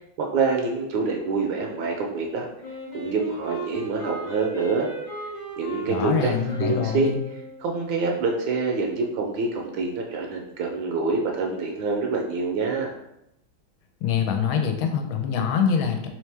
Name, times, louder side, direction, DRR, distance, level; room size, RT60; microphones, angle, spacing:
voice 1, 0.2-2.5 2.9-4.9 5.6-6.3 6.6-7.1 7.6-12.9, right 4 dB, 75° right, 1 dB, 1.3 m, -26 dB
Wind instrument woodwind instrument, 2.6-7.7, right 2 dB, 45° left, 1.3 m, -36 dB
voice 2, 5.9-7.2 14.0-16.1, left 7 dB, 85° left, 4 dB, 1.4 m, -24 dB
3.4 x 3.2 x 3.3 m, 0.84 s
omnidirectional pair, 2.2 m